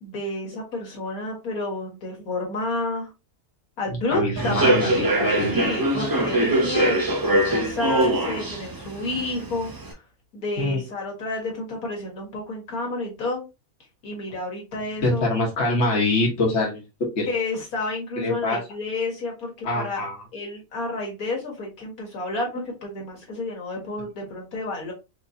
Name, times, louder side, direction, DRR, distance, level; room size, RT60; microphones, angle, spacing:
voice 1, 0.0-3.1 3.8-10.0 10.3-13.4 14.0-15.3 17.3-20.1 20.3-24.9, left 2 dB, 75° left, -1 dB, 1.9 m, -30 dB
voice 2, 4.1-5.5 10.6-10.8 15.0-16.8 17.2-17.3 18.2-18.6 19.6-20.2, left 2 dB, 55° left, -2 dB, 1.5 m, -24 dB
Human voice / Subway metro underground, 4.4-9.9, right 1 dB, 30° right, 0.4 m, -23 dB
4.3 x 3.0 x 2.6 m, 0.26 s
omnidirectional pair, 1.5 m